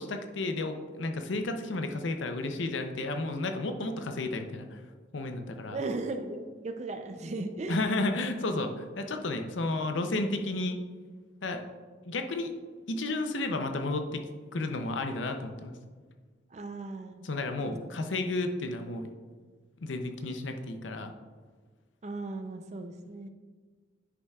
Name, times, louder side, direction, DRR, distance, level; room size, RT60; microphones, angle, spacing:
voice 1, 0.0-4.8 5.1-5.8 7.7-10.8 11.4-11.6 12.0-12.5 12.9-14.2 14.5-15.7 17.2-19.1 19.8-21.1, left 2 dB, 85° left, 6 dB, 0.6 m, -32 dB
voice 2, 5.7-7.8 16.5-17.2 17.6-17.8 22.0-23.3, right 2 dB, 35° right, 7 dB, 0.5 m, -37 dB
9.8 x 5.5 x 2.4 m, 1.5 s
head